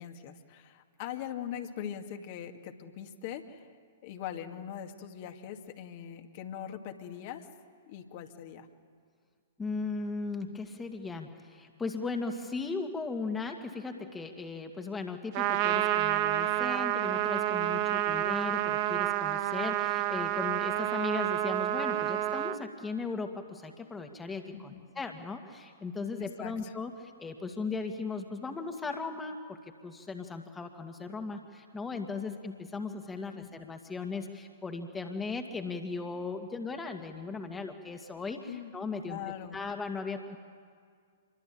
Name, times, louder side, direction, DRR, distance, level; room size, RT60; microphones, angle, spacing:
voice 1, 0.0-3.7 4.0-7.5 7.9-8.7 18.0-18.1 24.5-24.9 26.2-26.7 33.4-33.5 38.5-38.7 39.0-39.6, left 9 dB, 40° left, 5 dB, 2.2 m, -41 dB
voice 2, 9.6-39.2 39.5-40.4, left 4 dB, 10° left, 4 dB, 2.2 m, -37 dB
Trumpet, 15.3-22.6, right 13 dB, 35° right, 1.6 m, -29 dB
27.5 x 22.5 x 9.0 m, 2.1 s
figure-of-eight pair, 110°, 0 cm